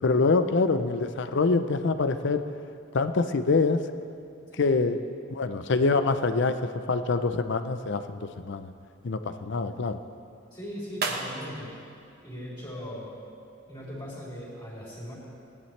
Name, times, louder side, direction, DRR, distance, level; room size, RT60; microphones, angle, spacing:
voice 1, 0.0-2.4 2.9-3.8 4.6-5.0 5.3-8.7 9.0-10.0, left 3 dB, 65° left, 10 dB, 0.6 m, -25 dB
voice 2, 4.5-4.9 10.5-11.7 12.2-13.2 13.7-15.1, equal, 25° left, -8 dB, 3.5 m, -39 dB
sound 1, 10.9-13.3, right 3 dB, 55° right, 1.1 m, -40 dB
18.0 x 10.5 x 3.3 m, 2.6 s
head